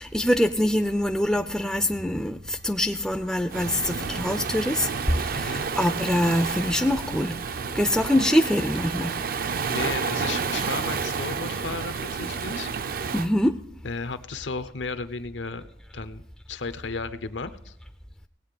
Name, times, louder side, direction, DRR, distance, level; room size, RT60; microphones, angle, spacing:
voice 1, 0.0-9.2 13.1-13.6, left 1 dB, 5° left, 8 dB, 0.4 m, -24 dB
sound 1, 0.8-12.1, equal, 90° right, 2.4 m, -49 dB
Waves surf, 3.5-13.3, right 5 dB, 55° right, 0.5 m, -30 dB
voice 2, 5.3-5.7 9.6-12.7 13.8-15.7 15.9-16.2 16.5-17.7, left 4 dB, 85° left, 11 dB, 0.8 m, -34 dB
18.0 x 8.2 x 5.2 m, 0.83 s
head